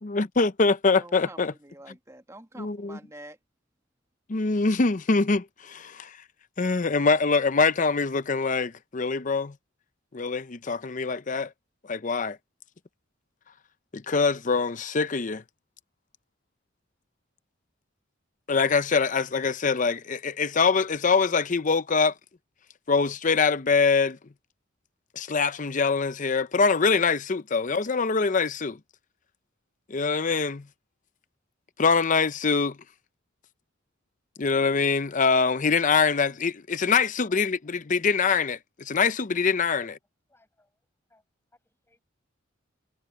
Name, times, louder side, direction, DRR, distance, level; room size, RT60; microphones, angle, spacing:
voice 1, 0.0-1.5 2.6-3.0 4.3-6.2 6.6-9.6 10.1-11.5 11.8-12.4 13.9-15.4 18.5-22.1 22.9-24.2 25.2-28.8 29.9-30.7 31.8-32.8 34.4-39.9, left 4 dB, 40° left, 0.6 m, -24 dB
voice 2, 1.0-3.4, right 1 dB, 15° right, 1.7 m, -47 dB
voice 3, 40.3-41.3 41.5-42.0, left 2 dB, 10° left, 7.6 m, -64 dB
head